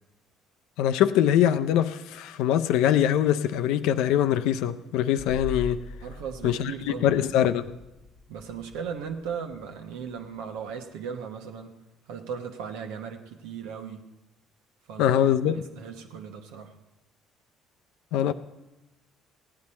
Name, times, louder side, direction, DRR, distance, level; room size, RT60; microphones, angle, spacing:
voice 1, 0.8-5.8 6.4-6.7 7.0-7.8 15.0-15.6 18.1-18.3, left 10 dB, 80° left, 0.5 m, -23 dB
sound 1, 5.2-10.7, left 3 dB, 35° left, 1.1 m, -43 dB
voice 2, 6.0-7.2 8.3-11.8 12.1-14.1 14.9-15.2 15.5-16.8, right 7 dB, 85° right, 1.1 m, -37 dB
16.0 x 9.7 x 4.3 m
supercardioid pair, 75°, 0 cm